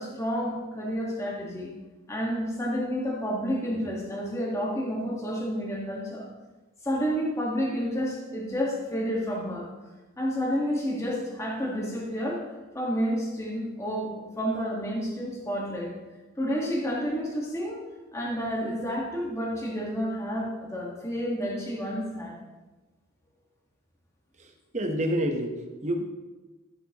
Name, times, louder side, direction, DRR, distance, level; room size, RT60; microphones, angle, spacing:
voice 1, 0.0-1.7 2.1-6.3 6.8-9.7 10.2-12.4 12.7-15.9 16.4-17.8 18.1-22.4, equal, 15° left, -3 dB, 1.5 m, -30 dB
voice 2, 24.4-26.0, equal, 30° right, 3 dB, 1.0 m, -29 dB
13.0 x 7.8 x 2.9 m, 1.2 s
head